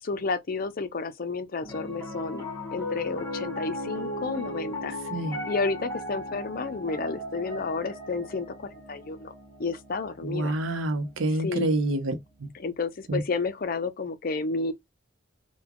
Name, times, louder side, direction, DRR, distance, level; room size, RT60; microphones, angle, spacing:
voice 1, 0.0-2.5 2.7-5.0 5.5-9.3 9.6-10.6 11.4-11.7 12.5-14.7, left 4 dB, 45° left, 0.5 m, -31 dB
Piano, 1.6-12.0, left 1 dB, 15° left, 1.2 m, -37 dB
voice 2, 10.2-12.1 12.4-12.5 13.1-13.2, right 2 dB, 80° right, 0.7 m, -27 dB
3.8 x 2.2 x 2.9 m
head